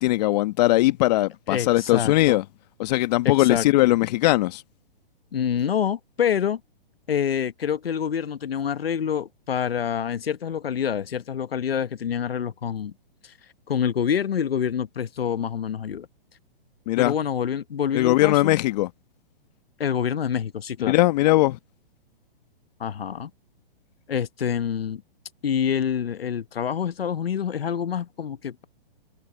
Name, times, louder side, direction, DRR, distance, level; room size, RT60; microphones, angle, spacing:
voice 1, 0.0-2.4 2.8-4.6 16.9-17.1 17.9-18.9 20.9-21.6, left 17 dB, 45° left, 1.4 m, -20 dB
voice 2, 1.5-2.4 3.2-3.9 5.3-6.6 7.1-12.9 13.2-13.3 13.7-16.1 17.0-18.6 19.8-20.9 22.8-23.3 24.1-25.0 25.4-28.6, left 8 dB, 80° left, 1.1 m, -27 dB
hypercardioid pair, 135°, 29 cm